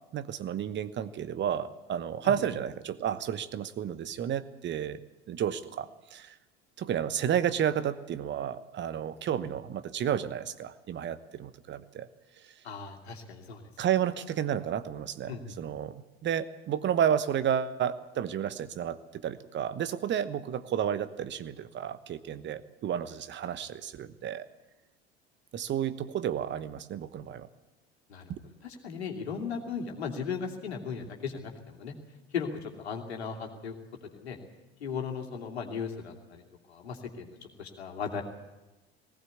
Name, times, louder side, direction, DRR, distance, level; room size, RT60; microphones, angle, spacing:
voice 1, 0.1-5.0 5.3-6.3 6.8-12.1 13.8-24.4 25.5-27.5 28.3-28.4, right 9 dB, 35° right, 14 dB, 1.1 m, -31 dB
voice 2, 12.6-13.6 15.3-15.4 28.1-28.3 28.6-31.9 32.3-33.7 34.1-34.4 34.8-36.4 36.7-37.3 37.6-38.2, left 6 dB, 75° left, 2 dB, 2.8 m, -36 dB
19.0 x 17.0 x 8.3 m, 1.1 s
figure-of-eight pair, 70°, 32 cm